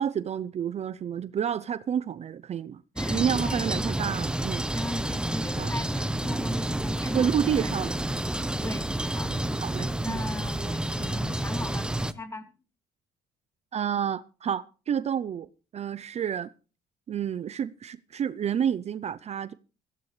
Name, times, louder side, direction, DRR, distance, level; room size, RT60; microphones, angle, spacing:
voice 1, 0.0-2.8 3.1-4.6 5.6-5.7 7.1-7.9 9.3-10.2 13.7-15.5 15.7-16.5 17.1-19.5, right 8 dB, 40° right, 0.6 m, -29 dB
voice 2, 2.9-3.7 4.7-7.8 8.6-8.9 9.1-9.3 10.0-12.5, left 2 dB, 15° left, 2.5 m, -38 dB
sound 1, 3.0-12.1, right 1 dB, 5° right, 0.9 m, -29 dB
17.0 x 15.5 x 3.3 m
cardioid pair, 110°, 17 cm